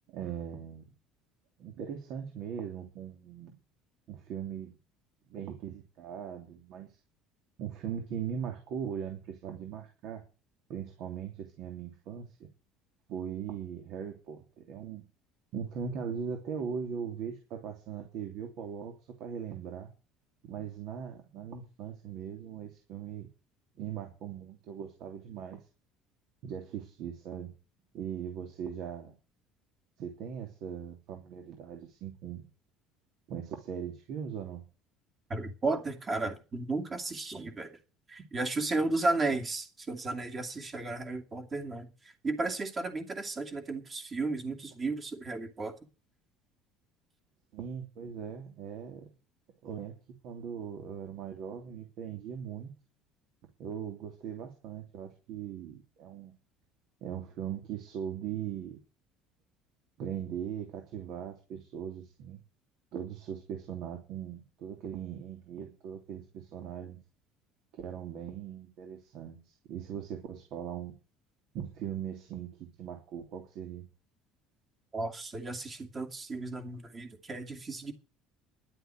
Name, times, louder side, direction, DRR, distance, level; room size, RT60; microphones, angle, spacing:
voice 1, 0.1-0.9 1.6-3.5 4.1-4.7 5.3-6.9 7.6-10.2 10.7-12.5 13.1-15.0 15.5-19.9 20.4-23.3 23.8-25.6 26.4-27.5 27.9-29.1 30.0-32.5 33.3-34.6 37.3-37.4 47.5-49.1 49.6-50.0 50.2-52.7 53.6-56.3 57.0-58.8 60.0-62.4 62.9-67.0 67.7-70.9 71.5-73.9, right 8 dB, 60° right, 3.0 m, -40 dB
voice 2, 35.3-37.7 38.1-41.9 42.2-45.7 74.9-77.9, right 3 dB, 25° right, 2.6 m, -34 dB
11.5 x 8.0 x 9.2 m
cardioid pair, 135°, 0 cm